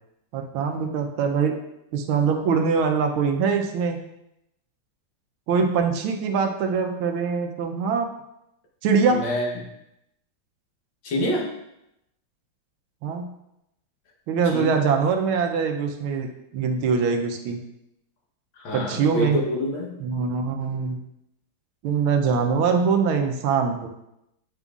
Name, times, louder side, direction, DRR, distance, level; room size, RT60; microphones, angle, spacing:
voice 1, 0.3-1.6 1.9-4.0 5.5-8.1 8.8-9.2 13.0-13.3 14.3-17.6 18.7-19.4 20.0-21.0 21.8-23.9, right 5 dB, 75° right, 5 dB, 1.5 m, -23 dB
voice 2, 9.1-9.5 11.0-11.5 14.4-14.7 18.6-20.0, left 1 dB, 70° left, -1 dB, 1.9 m, -26 dB
8.2 x 5.3 x 2.4 m, 0.83 s
omnidirectional pair, 2.3 m